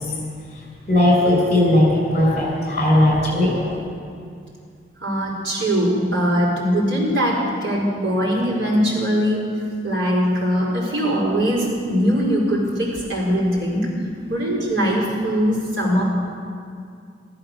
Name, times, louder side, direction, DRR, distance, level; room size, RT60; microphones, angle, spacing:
voice 1, 0.9-3.7, left 1 dB, 40° left, -1 dB, 5.2 m, -17 dB
voice 2, 5.0-9.4 9.8-13.9 14.3-16.0, equal, 90° right, -4 dB, 4.9 m, -21 dB
14.5 x 13.0 x 6.8 m, 2.3 s
head